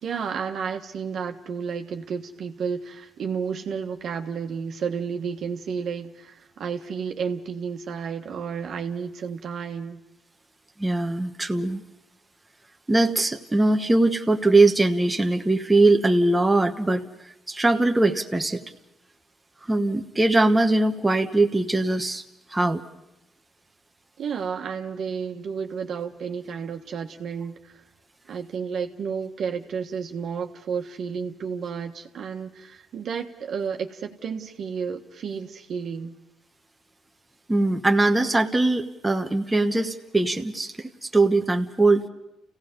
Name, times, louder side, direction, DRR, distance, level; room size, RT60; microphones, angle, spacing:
voice 1, 0.0-10.0 24.2-27.8 28.3-36.2, right 6 dB, 65° right, 4 dB, 1.5 m, -31 dB
voice 2, 10.8-11.8 12.9-17.0 17.5-18.6 19.7-22.2 22.5-22.8 37.5-42.1, right 2 dB, 15° right, 3 dB, 1.2 m, -21 dB
29.5 x 16.5 x 5.3 m, 0.88 s
cardioid pair, 90°, 0 cm